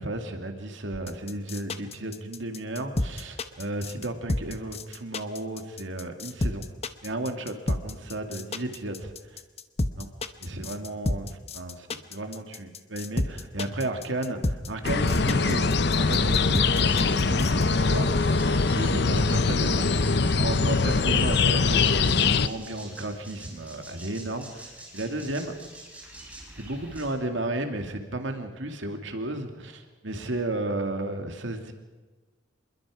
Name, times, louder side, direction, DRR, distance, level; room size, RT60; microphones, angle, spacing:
voice 1, 0.0-6.6 7.0-9.4 10.0-10.1 10.4-11.3 11.5-14.4 14.7-16.6 16.9-18.4 18.7-25.5 26.6-31.7, right 1 dB, 80° right, 5 dB, 2.3 m, -33 dB
sound 1, 0.9-17.6, left 2 dB, 35° left, 0.9 m, -30 dB
sound 2, 14.8-22.5, left 4 dB, 60° left, 0.8 m, -22 dB
sound 3, 15.4-27.1, right 1 dB, 10° right, 5.1 m, -47 dB
26.5 x 22.0 x 4.9 m, 1.2 s
head